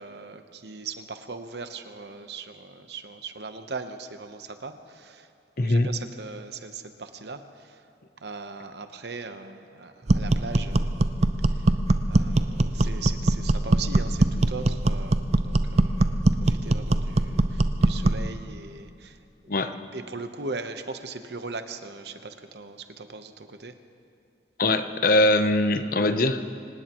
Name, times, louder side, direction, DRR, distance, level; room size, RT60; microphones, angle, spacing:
voice 1, 0.0-5.3 5.6-7.8 8.2-10.9 11.6-11.7 12.1-19.2 19.4-23.8, right 4 dB, 65° right, 8 dB, 1.0 m, -39 dB
voice 2, 5.6-5.9 19.5-19.7 24.6-26.4, left 2 dB, 55° left, 9 dB, 0.8 m, -22 dB
sound 1, 10.1-18.3, right 2 dB, 40° right, 0.6 m, -22 dB
25.5 x 19.0 x 3.1 m, 2.4 s
head